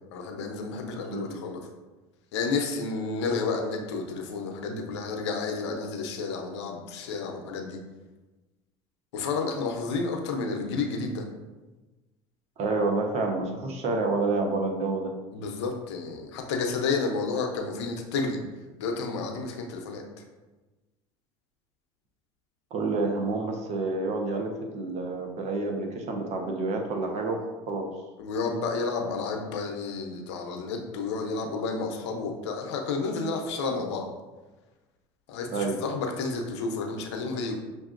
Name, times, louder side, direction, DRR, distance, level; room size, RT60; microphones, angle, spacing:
voice 1, 0.1-1.6 2.3-7.8 9.1-11.3 15.3-18.4 18.8-20.0 28.2-34.1 35.3-37.6, left 4 dB, 80° left, 2 dB, 0.7 m, -31 dB
voice 2, 1.0-1.4 12.6-15.1 22.7-27.4 27.7-27.9 35.5-35.8, right 3 dB, 50° right, 3 dB, 0.8 m, -28 dB
5.8 x 2.7 x 2.5 m, 1.2 s
hypercardioid pair, 85°, 14 cm